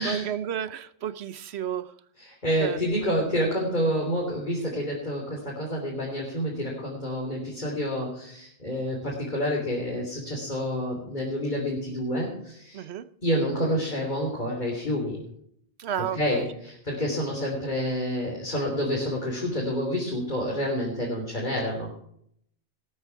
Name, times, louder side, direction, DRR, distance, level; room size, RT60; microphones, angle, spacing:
voice 1, 0.0-1.9 2.6-2.8 12.7-13.1 15.8-16.4, right 9 dB, 90° right, 14 dB, 1.0 m, -32 dB
voice 2, 2.2-12.8 13.2-15.2 16.1-21.9, equal, 45° left, -3 dB, 3.5 m, -28 dB
19.0 x 9.2 x 4.7 m, 0.68 s
omnidirectional pair, 1.1 m